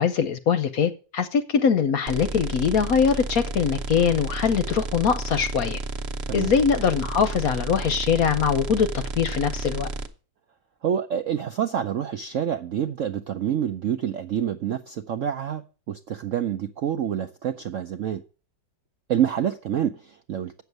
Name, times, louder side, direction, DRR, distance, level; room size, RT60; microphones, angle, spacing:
voice 1, 0.0-5.8 6.3-9.9, left 7 dB, 60° left, 11 dB, 1.0 m, -22 dB
sound 1, 2.1-10.1, right 3 dB, 45° right, 0.9 m, -32 dB
voice 2, 10.8-18.2 19.1-20.6, right 9 dB, 70° right, 8 dB, 0.7 m, -27 dB
8.3 x 7.1 x 8.0 m, 0.36 s
omnidirectional pair, 2.1 m